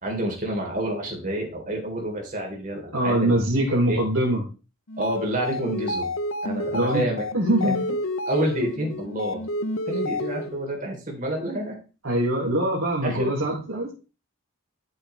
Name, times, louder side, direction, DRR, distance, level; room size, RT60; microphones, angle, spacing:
voice 1, 0.0-3.4 3.9-4.0 5.0-6.1 6.4-7.3 7.6-7.7 8.3-9.4 9.9-11.7 13.0-13.3, right 1 dB, 35° right, 0 dB, 3.7 m, -28 dB
voice 2, 2.9-4.4 6.7-7.0 7.3-7.8 12.0-13.9, right 1 dB, 75° right, -4 dB, 3.2 m, -23 dB
sound 1, 4.9-10.7, left 1 dB, 75° left, 0.9 m, -30 dB
12.0 x 7.9 x 3.4 m, 0.33 s
head